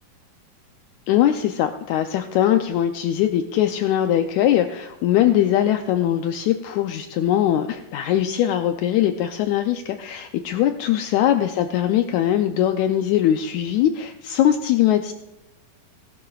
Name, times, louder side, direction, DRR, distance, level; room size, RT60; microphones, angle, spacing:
voice 1, 1.1-15.1, left 11 dB, 80° left, 7 dB, 1.7 m, -21 dB
19.0 x 11.5 x 2.4 m, 0.96 s
omnidirectional pair, 4.0 m